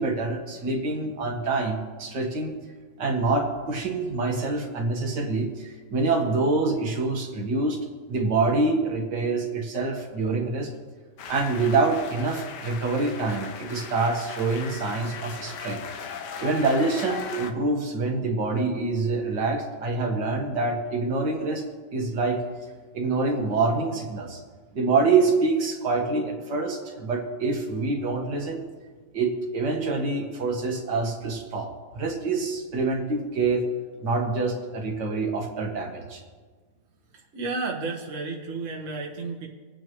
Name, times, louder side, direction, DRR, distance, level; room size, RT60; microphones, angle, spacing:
voice 1, 0.0-2.6 3.0-7.8 8.1-10.7 11.3-15.8 16.4-21.6 21.9-22.4 22.9-24.4 24.7-28.6 29.1-33.6 34.0-36.2, right 3 dB, 85° right, 1 dB, 2.1 m, -26 dB
sound 1, 11.2-17.5, left 6 dB, 80° left, 1.5 m, -38 dB
voice 2, 37.1-39.5, right 3 dB, 50° right, -1 dB, 1.7 m, -32 dB
27.0 x 9.1 x 3.1 m, 1.5 s
omnidirectional pair, 1.8 m